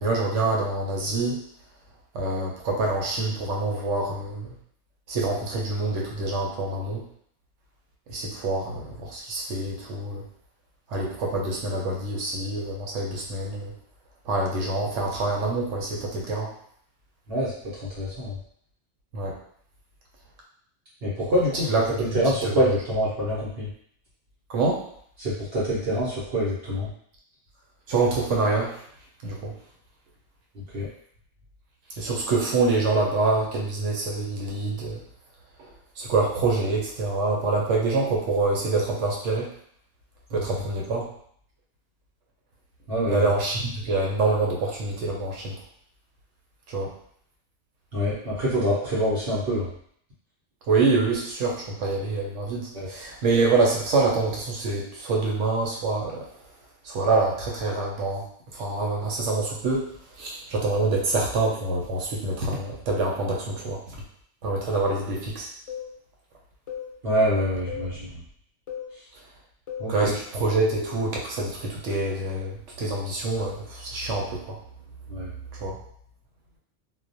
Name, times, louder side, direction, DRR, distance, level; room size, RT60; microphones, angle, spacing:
voice 1, 0.0-1.4 2.1-4.5 5.1-7.0 8.1-10.2 10.9-13.7 14.3-16.5 19.1-19.4 21.7-22.0 22.4-22.7 24.5-24.8 27.9-28.7 29.2-29.5 32.0-35.0 35.6-35.7 36.0-39.5 40.3-41.0 43.1-45.5 46.7-46.9 50.7-56.3 56.8-58.2 58.5-59.9 60.2-63.8 64.4-65.5 69.9-74.5 75.6-75.8, right 3 dB, 80° right, -2 dB, 0.9 m, -26 dB
voice 2, 17.9-18.4 21.0-21.7 22.0-23.7 25.2-26.9 30.5-30.9 40.3-40.4 42.9-43.3 47.9-49.7 52.7-52.9 67.0-68.1 69.8-70.1 75.1-75.3, equal, 60° right, -8 dB, 0.9 m, -25 dB
sound 1, 65.7-65.9 66.7-66.9 67.7-67.9 68.7-68.9 69.7-69.9 70.7-71.0, left 7 dB, 90° left, 0.9 m, -35 dB
2.3 x 2.1 x 2.6 m, 0.64 s
omnidirectional pair, 1.2 m